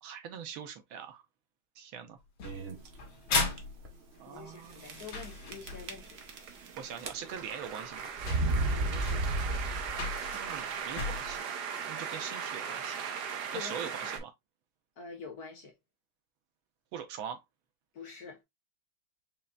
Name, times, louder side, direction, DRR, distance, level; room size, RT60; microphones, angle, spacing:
voice 1, 0.0-1.2 1.7-2.2 4.2-5.0 6.8-8.1 10.3-11.5 11.9-13.1 13.5-14.3 16.9-17.4, right 8 dB, 80° right, 1.7 m, -42 dB
sound 1, 2.4-6.0 7.3-7.4 8.0-8.1 8.3-11.4, left 4 dB, 75° left, 2.3 m, -36 dB
sound 2, 2.4-2.9 3.5-3.6 3.8-3.9 4.8-5.2 5.5-6.7 7.0-7.5 8.2-10.1, right 2 dB, 50° right, 0.8 m, -32 dB
voice 2, 4.3-6.2 8.7-9.2 13.5-14.1 15.0-15.7 17.9-18.4, left 5 dB, 50° left, 1.6 m, -46 dB
sound 3, 4.9-14.2, right 7 dB, 65° right, 1.2 m, -39 dB
5.5 x 3.3 x 2.3 m
omnidirectional pair, 2.2 m